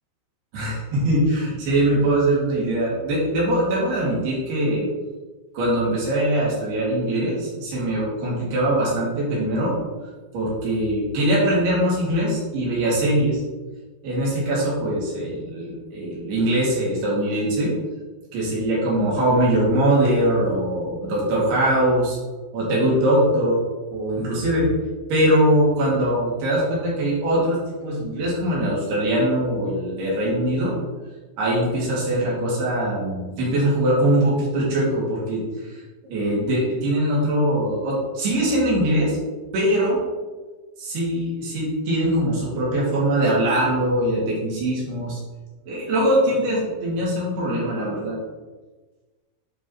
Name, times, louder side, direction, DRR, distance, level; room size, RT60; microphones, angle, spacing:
voice 1, 0.5-4.9 5.5-9.8 10.3-13.4 14.0-17.7 18.3-22.2 22.5-23.6 23.9-24.7 25.1-30.7 31.4-35.4 35.7-35.8 36.1-39.2 39.5-40.0 40.8-45.2 45.7-48.2, right 1 dB, 65° right, -5 dB, 4.0 m, -22 dB
10.5 x 5.4 x 2.9 m, 1.3 s
omnidirectional pair, 5.1 m